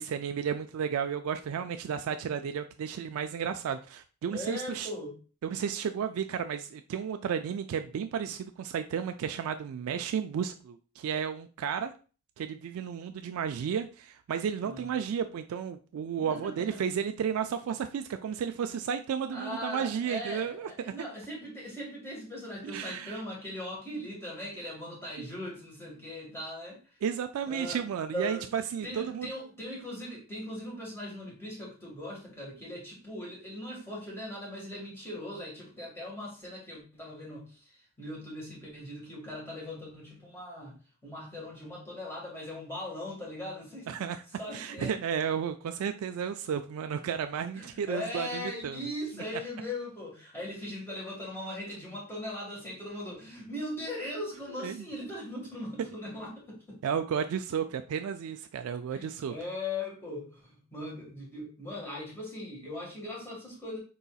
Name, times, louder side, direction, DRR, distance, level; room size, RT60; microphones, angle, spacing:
voice 1, 0.0-4.9 5.4-11.9 12.4-20.9 22.6-23.2 25.2-25.3 27.0-29.3 43.9-44.2 44.5-48.8 54.6-54.9 56.8-59.3, right 7 dB, 75° right, 8 dB, 0.3 m, -33 dB
voice 2, 4.3-5.2 14.6-14.9 16.3-16.8 19.3-26.8 27.5-27.9 28.1-28.5 28.8-40.8 41.0-44.0 44.4-45.0 47.5-56.8 58.9-63.8, left 1 dB, 10° left, -4 dB, 1.6 m, -39 dB
4.7 x 4.0 x 2.3 m, 0.37 s
head